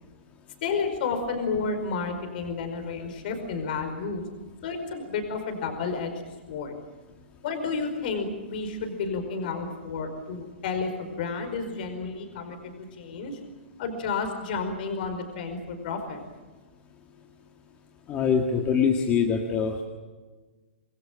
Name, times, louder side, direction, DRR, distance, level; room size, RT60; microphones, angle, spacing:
voice 1, 0.6-4.2 4.6-6.1 6.5-6.7 7.4-13.4 13.8-16.2, left 4 dB, 50° left, 6 dB, 5.0 m, -31 dB
voice 2, 18.1-19.8, left 6 dB, 20° left, 2 dB, 1.9 m, -24 dB
27.0 x 20.5 x 7.5 m, 1.3 s
hypercardioid pair, 160°, 6 cm